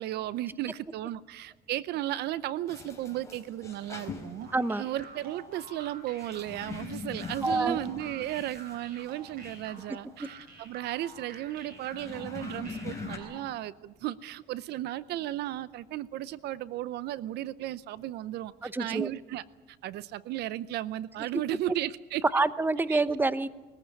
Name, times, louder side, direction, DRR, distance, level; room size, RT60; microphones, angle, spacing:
voice 1, 0.0-4.5 4.8-18.5 18.8-22.5 22.9-23.0, right 14 dB, 75° right, 17 dB, 0.7 m, -35 dB
sound 1, 2.7-13.2, left 4 dB, 20° left, 4.4 m, -43 dB
sound 2, 4.4-13.6, right 3 dB, 60° right, 7.9 m, -49 dB
voice 2, 4.5-4.9 7.4-7.8 18.6-19.1 22.3-23.5, right 3 dB, 10° right, 14 dB, 0.8 m, -27 dB
21.0 x 15.0 x 9.7 m, 1.2 s
cardioid pair, 110°, 17 cm